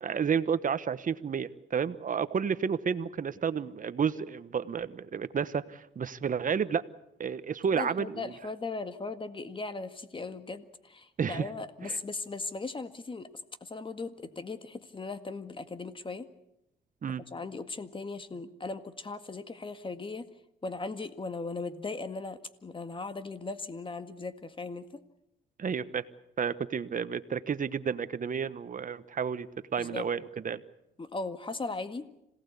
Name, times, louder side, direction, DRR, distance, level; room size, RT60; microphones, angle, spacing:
voice 1, 0.0-6.8 7.2-8.3 11.2-11.5 11.8-12.0 17.0-17.2 25.6-26.0 26.4-30.6, right 6 dB, 40° right, 14 dB, 1.2 m, -31 dB
voice 2, 7.8-13.3 13.6-16.3 17.1-20.3 20.6-24.9 29.8-30.1 31.0-32.1, left 3 dB, 25° left, 10 dB, 1.9 m, -38 dB
26.5 x 18.0 x 8.4 m, 0.83 s
cardioid pair, 90°, 20 cm